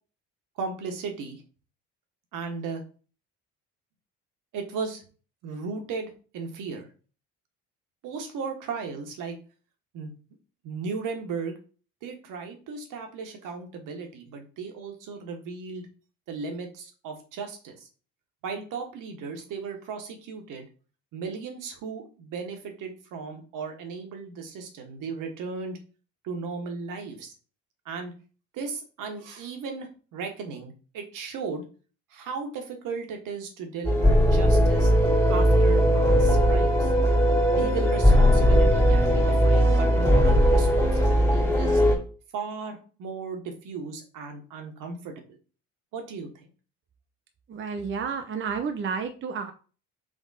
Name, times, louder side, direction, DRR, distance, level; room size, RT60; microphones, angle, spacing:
voice 1, 0.6-1.4 2.3-2.8 4.5-5.0 5.4-6.9 8.0-9.4 9.9-10.1 10.6-11.6 12.0-15.9 16.3-17.9 18.4-20.7 21.1-25.8 26.2-27.3 27.8-28.1 28.5-31.7 32.1-34.9 35.3-36.9 37.5-41.8 42.3-45.1 45.9-46.5, right 5 dB, 70° right, 4 dB, 1.4 m, -36 dB
sound 1, 33.8-42.0, equal, 10° left, 2.1 m, -19 dB
voice 2, 47.5-49.5, right 5 dB, 35° right, 6 dB, 0.7 m, -31 dB
3.7 x 3.4 x 4.0 m, 0.37 s
supercardioid pair, 75°, 33 cm